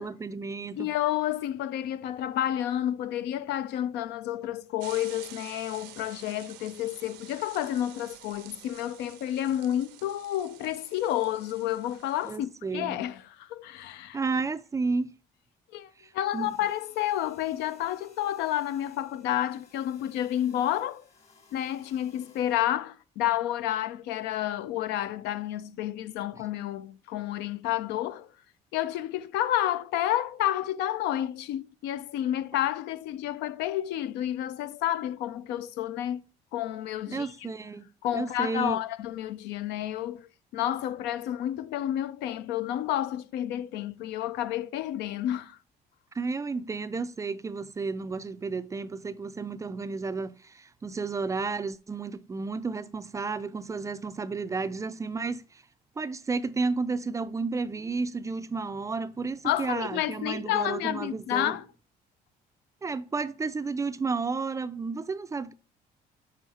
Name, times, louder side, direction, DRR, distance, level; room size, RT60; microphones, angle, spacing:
voice 1, 0.0-0.9 12.2-13.0 14.1-15.1 16.0-16.6 37.1-37.8 38.1-38.8 46.1-55.6 56.0-61.5 62.8-65.5, right 4 dB, 20° right, 0.3 m, -32 dB
voice 2, 0.8-14.2 15.7-21.0 21.5-28.3 28.7-36.2 36.5-37.3 38.0-45.6 59.4-61.7, left 12 dB, 85° left, 0.4 m, -30 dB
sound 1, 4.8-12.4, right 12 dB, 90° right, 0.6 m, -49 dB
sound 2, 16.2-22.6, left 4 dB, 40° left, 1.4 m, -59 dB
6.2 x 3.5 x 4.2 m
cardioid pair, 110°, 17 cm